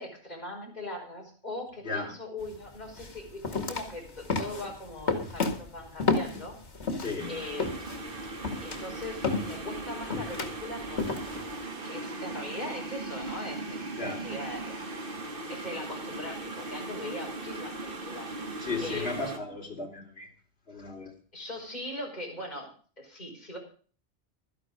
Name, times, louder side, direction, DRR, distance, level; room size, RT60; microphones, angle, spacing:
voice 1, 0.0-6.6 7.3-7.8 8.6-11.1 11.8-13.8 14.1-14.8 15.0-18.3 18.8-19.3 21.3-23.6, left 1 dB, 40° left, -1 dB, 5.3 m, -40 dB
sound 1, 2.4-2.6 3.0-7.2 7.6-11.6, left 3 dB, 85° left, 2.3 m, -31 dB
voice 2, 7.0-7.4 14.0-14.2 18.6-20.3 20.7-21.1, left 3 dB, 65° left, 1 dB, 3.5 m, -35 dB
sound 2, 7.2-19.4, right 2 dB, 55° right, 1.8 m, -38 dB
13.0 x 11.0 x 5.1 m, 0.42 s
omnidirectional pair, 1.1 m